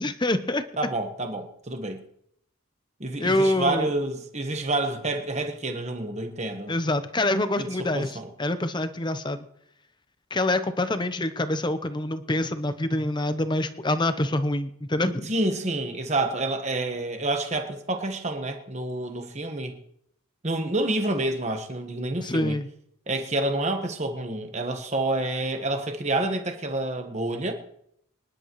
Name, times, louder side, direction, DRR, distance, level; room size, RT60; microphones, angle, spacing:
voice 1, 0.0-0.6 3.2-3.9 6.7-9.5 10.3-15.3 22.2-22.7, left 1 dB, 20° left, 0.8 m, -26 dB
voice 2, 0.8-2.0 3.0-6.7 7.6-8.3 15.3-19.8 20.4-22.6 23.1-27.5, right 2 dB, 30° right, 1.4 m, -28 dB
25.5 x 11.0 x 3.1 m
head